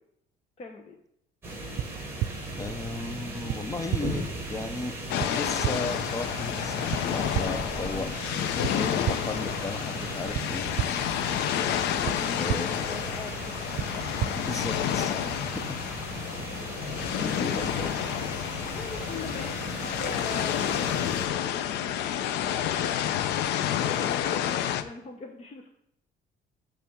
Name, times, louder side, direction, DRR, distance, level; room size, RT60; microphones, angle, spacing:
voice 1, 0.6-0.9 7.9-8.2 8.5-8.8 12.0-14.3 15.2-15.3 18.5-21.1 21.4-21.9 22.4-23.0 23.6-25.7, left 4 dB, 40° left, 1 dB, 1.1 m, -42 dB
sound 1, 1.4-21.3, right 1 dB, 15° right, 2.7 m, -37 dB
sound 2, 1.8-1.9 2.2-2.3 3.5-3.6 3.9-4.0 5.2-5.3 5.6-5.7 6.9-7.0 7.3-7.4 8.6-8.7 9.0-9.1 10.3-10.4 10.8-10.9 12.0-12.1 12.5-12.6 13.8-13.9 14.2-14.3, right 13 dB, 65° right, 0.4 m, -27 dB
voice 2, 2.6-4.9 5.3-8.1 8.6-10.7 12.4-13.1 14.4-15.8 17.2-17.9, left 3 dB, 20° left, 9 dB, 0.8 m, -35 dB
sound 3, 5.1-24.8, left 10 dB, 80° left, 0.6 m, -30 dB
10.5 x 3.5 x 7.1 m, 0.77 s
cardioid pair, 110°, 17 cm